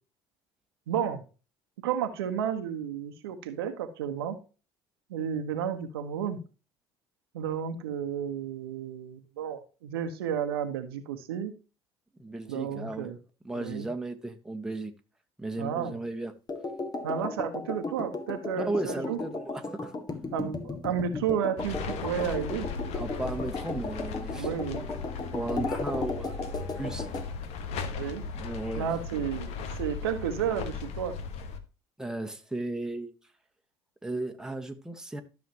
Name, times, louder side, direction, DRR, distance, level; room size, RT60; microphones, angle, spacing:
voice 1, 0.9-1.2 1.8-4.4 5.1-6.4 7.3-11.5 12.5-13.2 13.5-13.9 15.6-16.0 17.0-19.2 20.3-22.7 24.3-24.9 27.9-28.2 28.8-31.2, right 8 dB, 75° right, 1.2 m, -32 dB
voice 2, 12.2-13.1 13.4-14.9 15.4-16.3 18.6-19.9 22.9-24.5 25.3-27.1 28.3-28.9 32.0-33.1 34.0-35.2, right 2 dB, 5° right, 1.5 m, -35 dB
synth percussion, 16.5-27.3, left 3 dB, 30° left, 2.0 m, -36 dB
sound 1, 21.6-31.6, left 5 dB, 55° left, 1.3 m, -37 dB
13.0 x 6.4 x 2.9 m
figure-of-eight pair, 60°, 13 cm